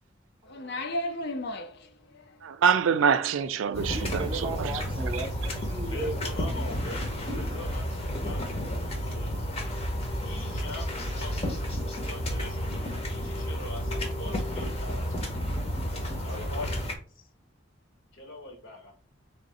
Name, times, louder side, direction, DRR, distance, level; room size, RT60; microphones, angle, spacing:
voice 1, 0.4-2.5, left 1 dB, 60° left, 0.6 m, -35 dB
voice 2, 2.4-4.7, right 7 dB, 80° right, 0.4 m, -25 dB
sound 1, 3.7-16.9, equal, 30° left, 0.8 m, -31 dB
voice 3, 3.8-6.2, right 2 dB, 25° right, 0.6 m, -36 dB
voice 4, 5.8-9.6 10.2-11.4 11.8-15.1 16.2-17.2 18.1-18.9, left 2 dB, 75° left, 1.4 m, -43 dB
3.6 x 2.6 x 4.1 m
head